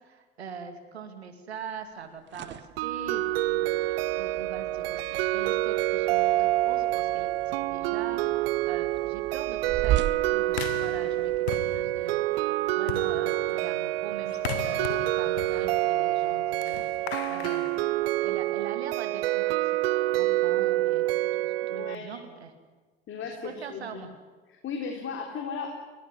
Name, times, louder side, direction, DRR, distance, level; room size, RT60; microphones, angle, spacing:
voice 1, 0.0-11.3 11.6-12.2 12.8-16.8 17.3-17.6 18.2-22.5 23.2-24.1, right 6 dB, 85° right, 7 dB, 2.5 m, -42 dB
sound 1, 2.0-11.4, right 13 dB, 35° right, 0.7 m, -37 dB
sound 2, 2.8-22.0, right 16 dB, 70° right, 0.7 m, -27 dB
sound 3, 10.5-18.6, left 11 dB, 75° left, 1.2 m, -39 dB
voice 2, 21.6-22.2 23.1-24.0 24.5-25.7, left 5 dB, 40° left, 2 dB, 3.6 m, -36 dB
22.0 x 17.0 x 9.9 m, 1.4 s
hypercardioid pair, 75°, 31 cm